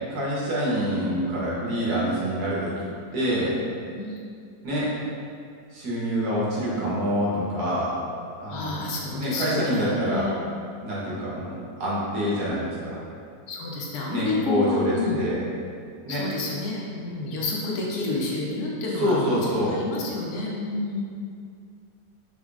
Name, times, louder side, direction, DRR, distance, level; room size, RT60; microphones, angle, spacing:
voice 1, 0.1-2.7 3.1-3.5 4.6-4.9 5.7-7.9 8.4-8.8 9.2-10.3 10.8-13.0 14.1-15.4 16.0-16.2 19.0-19.8, equal, 75° right, -7 dB, 1.4 m, -26 dB
voice 2, 8.5-10.4 13.5-15.2 16.1-19.2 19.5-21.0, left 2 dB, 75° left, -3 dB, 1.0 m, -29 dB
4.9 x 2.3 x 2.3 m, 2.3 s
omnidirectional pair, 1.7 m